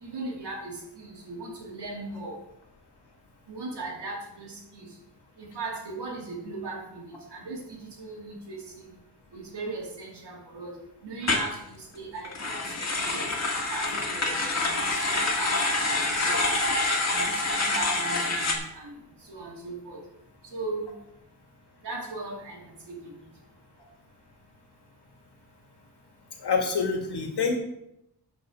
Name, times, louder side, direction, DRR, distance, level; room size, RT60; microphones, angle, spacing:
voice 1, 0.0-2.4 3.5-4.9 5.4-7.0 7.3-8.9 9.3-10.7 11.0-12.6 13.1-13.3 13.7-14.9 15.3-15.5 15.8-16.4 17.1-18.9 19.3-20.0 20.5-20.9 21.8-22.6 22.9-23.1, right 3 dB, 90° right, -2 dB, 2.8 m, -38 dB
sound 1, 11.2-11.5 12.2-18.6, left 2 dB, 40° left, 1.8 m, -27 dB
voice 2, 26.4-27.6, left 5 dB, 80° left, 2 dB, 2.1 m, -26 dB
8.6 x 5.4 x 6.3 m, 0.82 s
wide cardioid pair, 105°, 40 cm